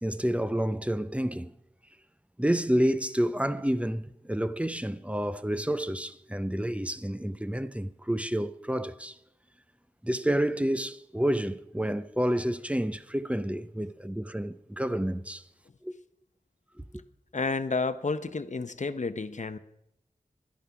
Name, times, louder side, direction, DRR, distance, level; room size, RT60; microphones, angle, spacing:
voice 1, 0.0-1.5 2.4-9.2 10.0-15.4 15.8-15.9 16.8-16.9, equal, 10° right, 0.6 m, -29 dB
voice 2, 17.3-19.6, left 4 dB, 55° left, 0.7 m, -31 dB
12.0 x 10.5 x 5.8 m
wide cardioid pair, 45°, 15 cm